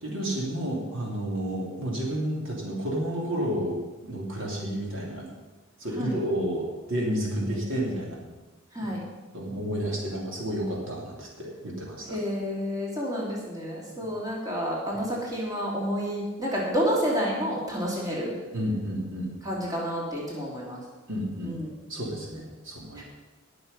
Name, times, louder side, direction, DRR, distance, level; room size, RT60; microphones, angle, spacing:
voice 1, 0.0-5.3 5.8-8.2 8.8-8.9 9.3-12.2 18.5-19.3 21.1-21.5 21.9-23.0, equal, 60° right, -2 dB, 3.1 m, -31 dB
voice 2, 7.3-8.0 8.7-9.0 12.1-18.3 19.4-20.8 21.4-21.7 23.0-23.1, equal, 15° right, -4 dB, 3.1 m, -30 dB
20.0 x 6.8 x 5.5 m, 1.2 s
head